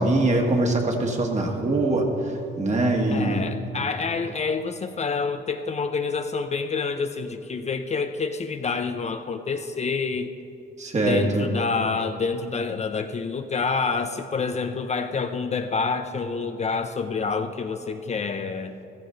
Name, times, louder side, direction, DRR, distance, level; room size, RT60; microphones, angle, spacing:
voice 1, 0.0-2.1 2.6-3.4 10.8-11.5, right 2 dB, 35° right, 1 dB, 1.9 m, -22 dB
voice 2, 3.1-10.4 11.0-18.7, left 4 dB, 35° left, 8 dB, 0.6 m, -27 dB
14.0 x 13.5 x 3.9 m, 2.7 s
cardioid pair, 90°, 20 cm